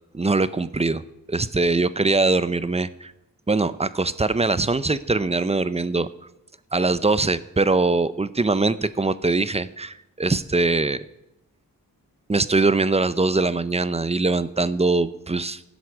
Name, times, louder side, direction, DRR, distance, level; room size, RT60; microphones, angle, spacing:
voice 1, 0.1-1.0 1.3-3.1 3.5-6.1 6.7-11.0 12.3-15.6, right 3 dB, 20° right, 15 dB, 0.6 m, -22 dB
15.5 x 8.0 x 6.2 m, 0.86 s
wide cardioid pair, 85°, 35 cm